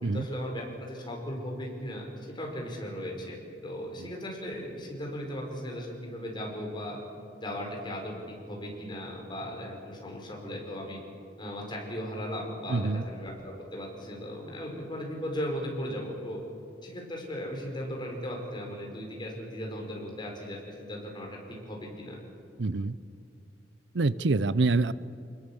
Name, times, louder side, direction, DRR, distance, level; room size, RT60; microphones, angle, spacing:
voice 1, 0.0-3.4 3.6-7.0 7.4-11.0 11.4-16.4 16.8-22.2, equal, 25° left, 0 dB, 4.7 m, -37 dB
voice 2, 12.7-13.0 22.6-23.0 23.9-24.9, right 3 dB, 70° right, 17 dB, 0.6 m, -26 dB
24.5 x 21.0 x 7.1 m, 2.4 s
head